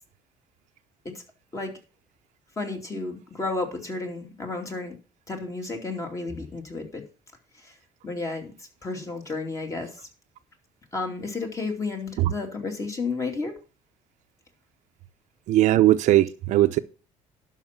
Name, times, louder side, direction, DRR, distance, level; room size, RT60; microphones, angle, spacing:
voice 1, 2.6-5.0 5.3-7.0 7.5-7.8 8.0-10.1 10.9-13.5, left 3 dB, 25° left, 2.6 m, -32 dB
voice 2, 15.5-16.8, right 14 dB, 65° right, 0.7 m, -19 dB
11.5 x 5.8 x 5.9 m
cardioid pair, 130°, 13 cm